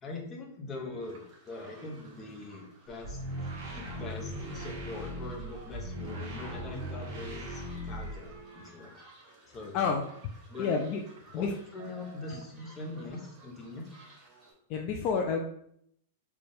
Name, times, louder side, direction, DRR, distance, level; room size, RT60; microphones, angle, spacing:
voice 1, 0.0-9.0 9.5-9.9 10.5-10.7 11.3-13.8, left 2 dB, 20° left, 0 dB, 0.7 m, -42 dB
sound 1, 0.7-1.5 1.8-4.0 4.6-5.3 5.5-6.5 6.8-7.7 8.0-9.0 9.6-11.4 11.8-12.7 13.0-13.1, right 6 dB, 60° right, 0.6 m, -54 dB
sound 2, 1.0-14.5, right 2 dB, 15° right, 1.1 m, -57 dB
sound 3, 2.9-8.4, equal, 40° right, 1.0 m, -39 dB
voice 2, 7.7-8.1 8.5-8.9 9.7-10.3 10.6-11.0 11.3-11.5 12.3-12.4 14.7-15.4, left 5 dB, 40° left, 2 dB, 0.3 m, -31 dB
4.2 x 2.3 x 3.4 m, 0.70 s
supercardioid pair, 155°, 0 cm